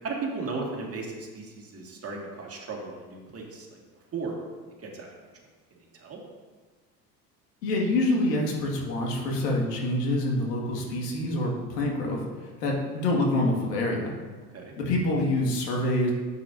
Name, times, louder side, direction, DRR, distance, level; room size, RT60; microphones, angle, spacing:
voice 1, 0.0-3.8 4.1-4.3 4.8-5.1 5.9-6.2 14.5-14.7, right 4 dB, 30° right, -1 dB, 2.1 m, -35 dB
voice 2, 7.6-12.2 12.6-14.1 14.8-16.1, left 1 dB, 75° left, -1 dB, 2.1 m, -26 dB
10.5 x 8.1 x 2.7 m, 1.4 s
hypercardioid pair, 80°, 48 cm